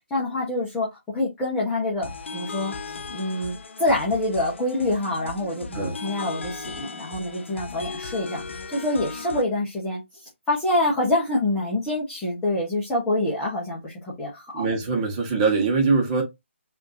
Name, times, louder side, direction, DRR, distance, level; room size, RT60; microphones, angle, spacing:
voice 1, 0.1-14.6, left 1 dB, 10° left, 1.2 m, -26 dB
sound 1, 2.0-9.4, left 4 dB, 65° left, 0.8 m, -37 dB
voice 2, 14.5-16.2, right 4 dB, 25° right, 1.4 m, -22 dB
5.1 x 2.9 x 2.8 m
hypercardioid pair, 160°, 7 cm